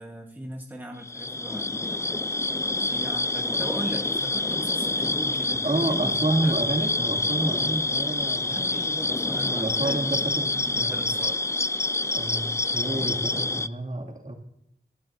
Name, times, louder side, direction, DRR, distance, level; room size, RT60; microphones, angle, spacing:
voice 1, 0.0-2.0 2.8-6.6 8.4-10.3 10.7-11.5, equal, 10° right, 1 dB, 1.4 m, -38 dB
sound 1, 1.0-13.7, left 2 dB, 15° left, 0.3 m, -27 dB
voice 2, 5.6-9.1 9.4-11.1 12.1-14.3, right 2 dB, 45° right, -1 dB, 2.5 m, -29 dB
18.0 x 11.5 x 2.7 m, 0.77 s
cardioid pair, 45°, 18 cm